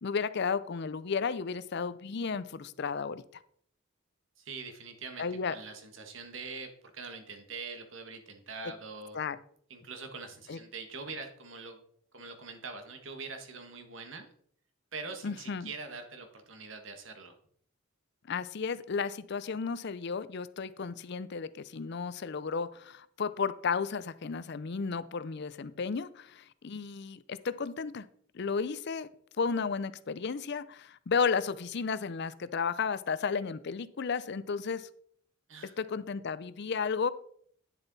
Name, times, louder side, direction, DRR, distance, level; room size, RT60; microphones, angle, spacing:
voice 1, 0.0-3.4 5.2-5.6 9.1-9.4 10.5-10.6 15.2-15.7 18.3-28.1 28.3-29.1 29.4-34.9 35.8-37.1, left 5 dB, 55° left, 16 dB, 0.5 m, -33 dB
voice 2, 4.4-9.2 9.7-11.8 12.1-14.2 14.9-17.3 35.5-35.8, right 4 dB, 65° right, 6 dB, 1.5 m, -43 dB
10.0 x 6.9 x 4.0 m, 0.62 s
head